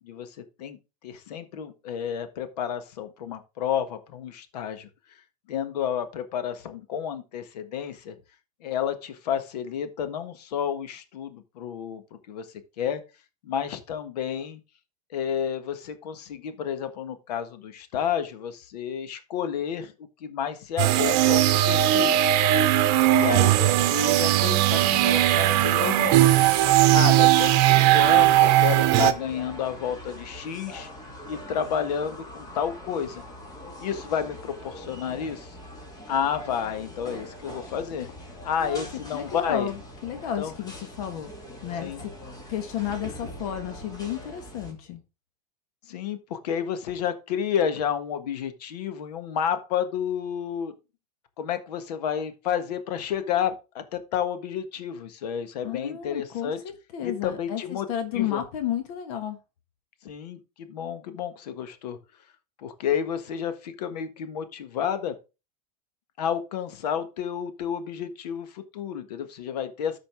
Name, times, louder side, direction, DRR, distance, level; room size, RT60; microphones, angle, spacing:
voice 1, 0.0-0.8 1.0-4.9 5.5-8.1 8.6-12.0 12.3-12.5 12.8-13.0 13.4-14.6 15.1-19.9 20.2-22.2 23.1-26.2 26.9-30.9 31.3-33.2 33.8-35.5 36.1-38.1 38.4-39.7 40.4-40.5 41.8-42.0 45.9-50.7 51.4-56.6 57.0-57.9 58.1-58.4 60.0-62.0 62.6-65.1 66.2-70.0, left 8 dB, 80° left, 1.6 m, -30 dB
sound 1, 20.8-29.1, right 13 dB, 50° right, 1.0 m, -19 dB
sound 2, 24.8-44.7, left 1 dB, 20° left, 2.7 m, -42 dB
voice 2, 39.1-41.3 41.6-42.1 42.5-45.0 55.6-56.5 56.9-59.4, left 10 dB, 65° left, 1.8 m, -32 dB
13.5 x 5.1 x 3.6 m
supercardioid pair, 135°, 20 cm